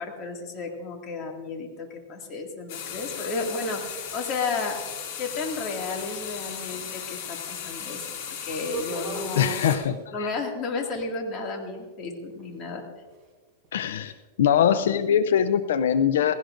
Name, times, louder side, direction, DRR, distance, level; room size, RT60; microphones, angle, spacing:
voice 1, 0.0-3.9 4.1-4.8 5.2-9.8 10.1-12.8 14.7-14.8, left 4 dB, 35° left, 2 dB, 2.2 m, -33 dB
sound 1, 2.7-9.8, left 8 dB, 60° left, 2.4 m, -36 dB
sound 2, 8.6-9.9 10.9-11.0 11.7-11.8 12.3-12.4 13.0-13.1 13.6-13.8 14.1-14.2, right 3 dB, 15° right, 4.8 m, -35 dB
voice 2, 9.3-10.3 13.7-14.1 14.4-16.4, left 9 dB, 85° left, 12 dB, 0.5 m, -22 dB
18.0 x 16.5 x 2.6 m, 1.4 s
supercardioid pair, 150°, 0 cm